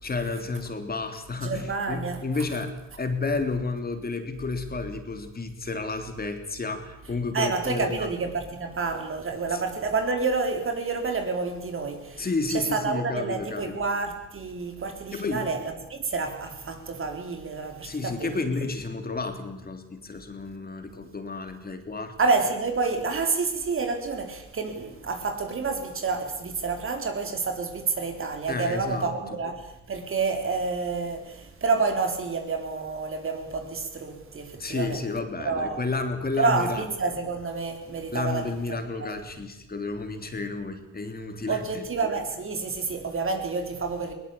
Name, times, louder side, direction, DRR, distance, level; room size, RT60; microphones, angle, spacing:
voice 1, 0.0-8.1 9.5-9.6 12.2-13.8 15.1-15.5 17.8-22.1 28.5-29.1 34.6-36.8 38.1-41.9, left 3 dB, 30° left, 3.3 m, -31 dB
voice 2, 1.4-2.2 7.3-18.5 22.2-35.0 35.4-35.8 36.4-38.5 39.0-39.1 41.5-44.1, right 4 dB, 45° right, 4.1 m, -29 dB
21.0 x 19.0 x 8.8 m
cardioid pair, 90°, 30 cm